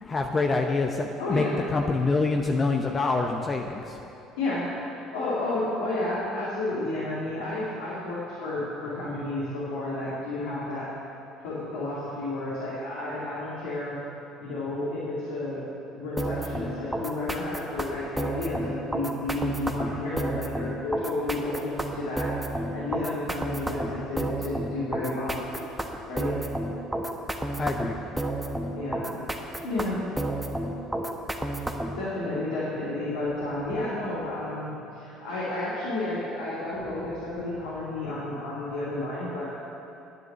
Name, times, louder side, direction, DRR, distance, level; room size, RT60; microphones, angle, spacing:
voice 1, 0.0-4.0 27.6-28.1, left 3 dB, 30° left, 3 dB, 0.8 m, -26 dB
voice 2, 1.2-1.6 4.4-4.9 5.1-10.9 11.4-14.0 14.4-15.6 15.9-25.5 26.1-26.3 28.7-29.2 29.6-30.0 31.9-39.4, left 2 dB, 85° left, -9 dB, 2.7 m, -31 dB
sound 1, 16.2-32.0, right 1 dB, 10° right, 1.2 m, -31 dB
10.0 x 8.0 x 7.5 m, 2.9 s
hypercardioid pair, 70°, 0 cm